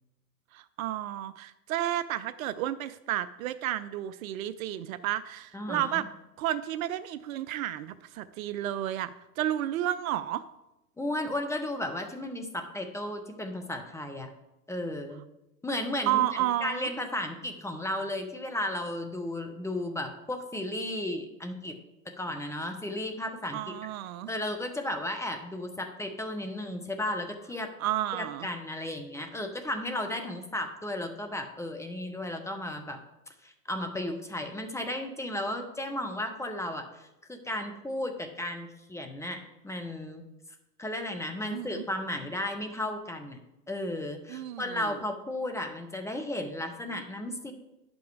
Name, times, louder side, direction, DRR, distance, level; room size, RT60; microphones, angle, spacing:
voice 1, 0.5-6.1 6.4-10.4 16.1-16.9 23.5-24.3 27.8-28.5 41.4-41.8 44.3-45.0, right 13 dB, 60° right, 15 dB, 0.5 m, -32 dB
voice 2, 5.5-6.0 11.0-14.3 14.7-15.2 15.6-16.2 16.6-21.7 22.0-23.7 24.3-27.7 28.1-33.0 33.4-40.3 40.8-43.4 43.7-47.5, left 1 dB, 5° left, 5 dB, 0.8 m, -34 dB
10.5 x 5.3 x 4.7 m, 0.92 s
hypercardioid pair, 100°, 49 cm